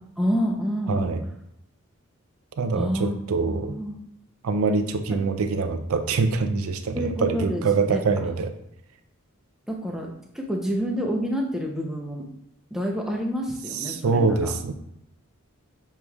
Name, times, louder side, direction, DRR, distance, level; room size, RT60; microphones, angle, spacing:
voice 1, 0.2-1.1 2.7-3.1 3.4-4.0 5.1-5.2 6.9-8.0 9.7-12.3 12.7-14.5, equal, ahead, 0 dB, 0.6 m, -28 dB
voice 2, 0.9-1.2 2.6-3.8 4.4-8.5 13.8-14.7, right 4 dB, 75° right, 8 dB, 0.4 m, -24 dB
7.2 x 3.1 x 2.3 m, 0.78 s
head